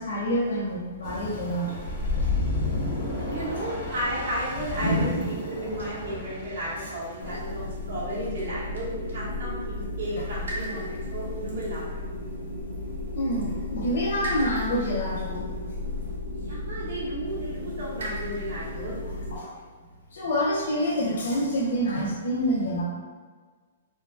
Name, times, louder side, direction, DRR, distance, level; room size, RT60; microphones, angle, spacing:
voice 1, 0.0-1.8 2.2-2.3 4.8-5.3 7.3-7.4 13.1-15.5 19.3-19.5 20.1-22.8, equal, 75° left, -6 dB, 1.0 m, -27 dB
sound 1, 1.0-7.9, left 2 dB, 30° left, 1.0 m, -32 dB
voice 2, 3.2-12.0 16.5-18.9, right 1 dB, 55° right, -8 dB, 1.4 m, -33 dB
sound 2, 7.2-19.4, left 2 dB, 80° right, 1.0 m, -34 dB
3.6 x 2.4 x 2.3 m, 1.4 s
hypercardioid pair, 165°, 0 cm